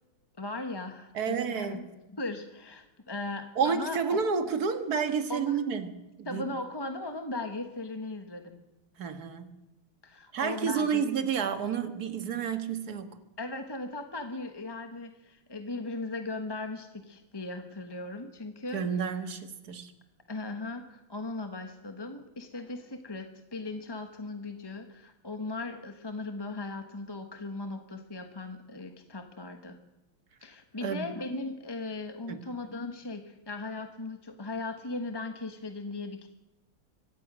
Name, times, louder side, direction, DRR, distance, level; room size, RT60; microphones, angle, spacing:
voice 1, 0.4-1.8 2.1-4.2 5.3-5.6 6.2-8.6 10.0-11.0 13.4-18.8 20.3-29.8 30.4-36.3, left 2 dB, 15° left, 0.9 m, -38 dB
voice 2, 1.1-1.9 3.6-6.4 9.0-9.6 10.3-13.1 18.7-19.9 30.8-31.1 32.3-32.5, right 6 dB, 50° right, 2.0 m, -30 dB
24.0 x 17.5 x 6.2 m
omnidirectional pair, 2.3 m